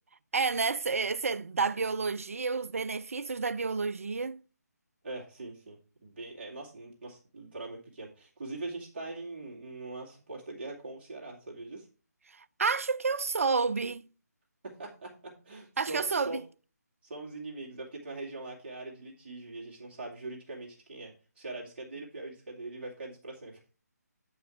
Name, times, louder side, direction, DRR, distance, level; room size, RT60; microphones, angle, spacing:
voice 1, 0.3-4.4 12.6-14.1 15.8-16.4, right 4 dB, 55° right, 0.5 m, -30 dB
voice 2, 5.0-11.9 14.6-16.4 17.0-23.6, right 2 dB, 35° right, 2.4 m, -42 dB
9.2 x 5.5 x 4.4 m
figure-of-eight pair, 150°, 9 cm